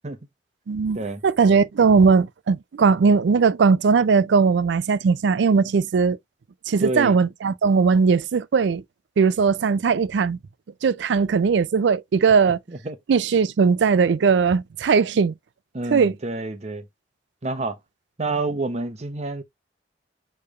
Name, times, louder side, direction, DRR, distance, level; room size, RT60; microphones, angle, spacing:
voice 1, 0.7-1.0 1.2-6.2 6.7-8.8 9.2-10.4 10.8-12.6 13.1-15.3 15.9-16.1, right 5 dB, 75° right, 0.4 m, -19 dB
voice 2, 6.8-7.2 12.7-13.0 15.7-16.9 17.4-17.8 18.2-19.4, right 2 dB, 35° right, 0.8 m, -28 dB
6.7 x 3.2 x 2.4 m
head